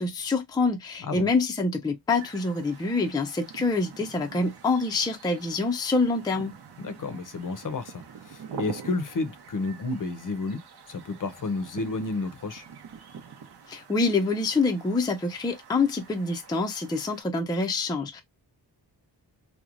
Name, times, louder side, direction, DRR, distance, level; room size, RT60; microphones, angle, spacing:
voice 1, 0.0-6.6 13.7-18.2, left 3 dB, 10° left, 0.4 m, -26 dB
sound 1, 2.2-17.2, right 6 dB, 65° right, 0.8 m, -45 dB
voice 2, 6.8-10.6 10.9-12.6, left 3 dB, 50° left, 0.6 m, -31 dB
2.9 x 2.1 x 2.4 m
wide cardioid pair, 110°, 42 cm